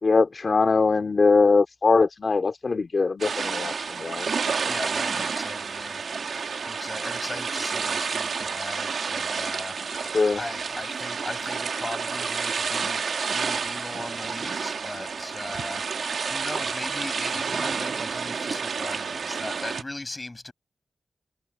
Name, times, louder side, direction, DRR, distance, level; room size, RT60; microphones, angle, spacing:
voice 1, 0.0-4.3 10.1-10.4, left 4 dB, 60° left, 3.0 m, -21 dB
sound 1, 3.2-19.8, right 5 dB, 85° right, 1.8 m, -30 dB
voice 2, 4.6-20.5, left 2 dB, 30° left, 7.8 m, -39 dB
cardioid pair, 55°, 0 cm